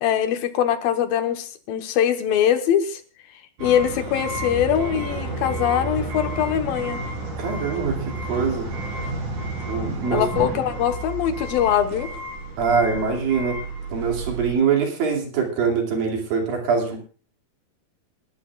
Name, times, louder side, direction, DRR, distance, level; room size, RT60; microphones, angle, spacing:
voice 1, 0.0-3.0 3.6-7.0 10.1-12.1, left 9 dB, 85° left, 7 dB, 3.0 m, -22 dB
sound 1, 3.6-14.5, right 2 dB, 60° right, 5.3 m, -31 dB
voice 2, 7.4-8.7 9.7-10.2 12.6-13.6 13.9-17.0, right 5 dB, 80° right, 1 dB, 4.4 m, -23 dB
29.0 x 12.0 x 2.4 m, 0.39 s
omnidirectional pair, 4.0 m